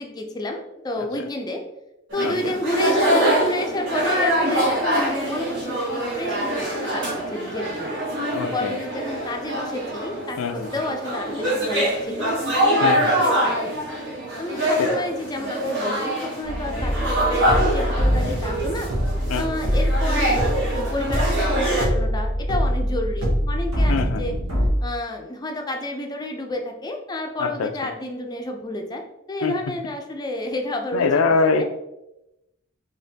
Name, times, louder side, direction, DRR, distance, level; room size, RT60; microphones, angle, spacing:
voice 1, 0.0-1.6 2.1-7.0 7.3-8.0 8.5-12.3 12.6-13.8 14.4-18.9 19.3-20.5 20.7-24.3 24.8-29.0 29.3-31.1 31.3-31.6, left 1 dB, 20° left, 3 dB, 0.5 m, -30 dB
sound 1, 2.1-21.8, right 1 dB, 60° right, 1.1 m, -24 dB
voice 2, 2.2-2.6 8.3-8.8 10.4-10.7 12.8-13.1 14.8-14.9 19.3-19.6 23.9-24.4 27.4-27.7 29.4-29.6 30.9-31.6, left 4 dB, 90° left, 7 dB, 0.4 m, -24 dB
sound 2, 16.4-24.7, equal, 85° right, 1.2 m, -24 dB
4.1 x 2.9 x 2.7 m, 0.90 s
head